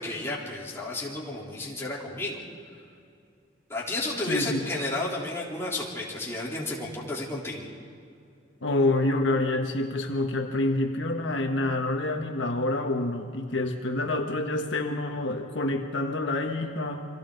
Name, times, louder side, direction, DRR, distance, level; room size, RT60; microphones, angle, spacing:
voice 1, 0.0-2.4 3.7-7.6, left 2 dB, 15° left, -5 dB, 3.8 m, -32 dB
voice 2, 4.2-4.6 8.6-17.0, left 2 dB, 80° left, 3 dB, 1.5 m, -27 dB
29.0 x 24.0 x 4.0 m, 2.4 s
head